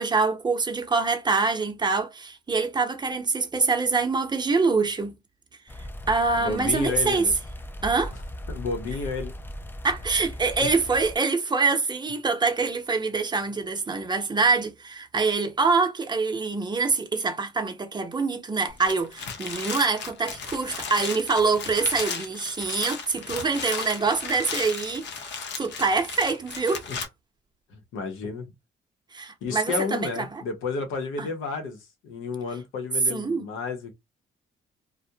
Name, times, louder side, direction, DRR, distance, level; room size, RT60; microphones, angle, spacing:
voice 1, 0.0-5.1 6.1-7.2 7.8-8.1 9.8-25.1 25.6-26.8 29.1-30.4 31.2-31.3 33.1-33.5, right 4 dB, 20° right, 0.7 m, -25 dB
sound 1, 5.7-11.2, equal, 10° left, 0.3 m, -38 dB
voice 2, 6.4-7.3 8.1-8.2 8.5-9.3 10.6-10.7 26.9-27.0 27.7-28.5 29.4-33.9, left 4 dB, 90° left, 0.9 m, -31 dB
sound 2, 18.7-27.1, left 5 dB, 60° left, 0.7 m, -35 dB
2.3 x 2.1 x 2.8 m
cardioid pair, 90°, 20 cm